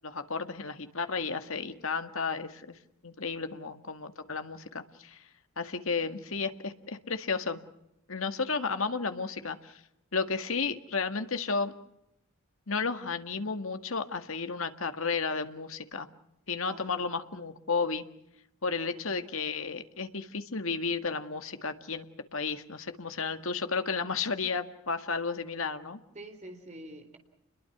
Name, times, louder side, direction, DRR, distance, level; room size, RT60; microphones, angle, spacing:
voice 1, 0.0-2.7 3.0-5.2 5.6-7.6 8.1-9.8 10.1-11.7 12.7-16.1 16.5-18.0 18.6-22.1 22.3-26.0, left 4 dB, 65° left, 8 dB, 1.9 m, -33 dB
voice 2, 16.6-17.1 18.7-19.1 26.1-27.2, right 1 dB, 30° right, 5 dB, 3.9 m, -47 dB
30.0 x 22.0 x 6.1 m, 0.81 s
head